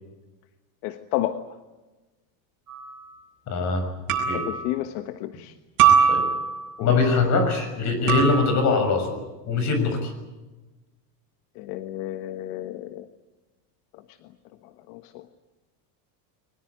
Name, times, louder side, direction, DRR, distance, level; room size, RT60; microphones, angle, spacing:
voice 1, 0.8-1.4 4.3-5.5 6.8-7.0 11.6-13.0 14.9-15.2, left 14 dB, 75° left, 9 dB, 1.4 m, -31 dB
sound 1, 2.7-2.9 4.1-4.6 5.8-6.7 8.1-8.7, right 7 dB, 40° right, 7.9 m, -21 dB
voice 2, 3.5-3.8 4.3-4.4 6.1-6.2 6.8-9.1 9.5-10.1, left 4 dB, 35° left, 7 dB, 6.5 m, -22 dB
23.0 x 20.5 x 9.5 m, 1.1 s
cardioid pair, 160°, 47 cm